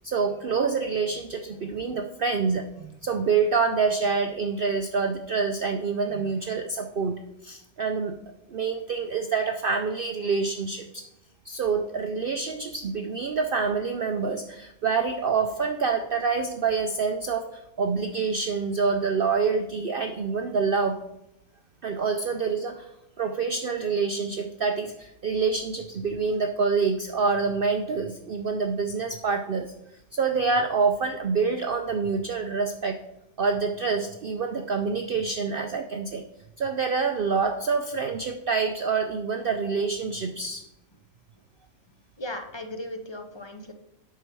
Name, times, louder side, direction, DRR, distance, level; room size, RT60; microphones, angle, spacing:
voice 1, 0.0-8.2 8.5-11.0 11.5-21.0 21.8-22.9 23.2-29.7 30.1-33.0 33.4-36.2 36.6-40.6, right 5 dB, 60° right, 6 dB, 0.6 m, -26 dB
voice 2, 42.2-43.7, left 1 dB, 30° left, 6 dB, 0.5 m, -37 dB
8.3 x 5.8 x 4.6 m, 0.87 s
omnidirectional pair, 1.5 m